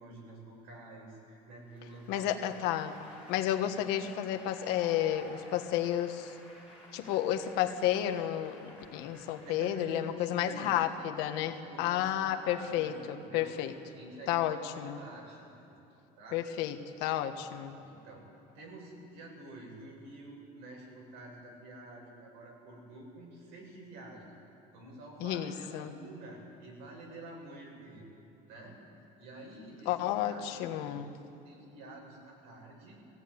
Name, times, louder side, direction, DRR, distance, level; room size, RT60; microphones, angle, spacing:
voice 1, 0.0-2.3 9.4-11.2 11.5-13.6 13.8-15.8 16.2-16.4 17.3-18.3 18.5-24.3 24.7-28.0 28.5-28.8 29.2-31.0 31.4-33.0, right 2 dB, 80° right, -1 dB, 7.0 m, -48 dB
Applause, 1.7-9.6, left 1 dB, 5° right, 6.1 m, -53 dB
voice 2, 2.1-2.9 3.3-6.3 6.9-13.7 14.3-15.0 16.3-17.8 25.2-25.9 29.8-31.1, left 11 dB, 80° left, 7 dB, 1.4 m, -32 dB
20.0 x 16.5 x 9.7 m, 2.9 s
cardioid pair, 175°, 17 cm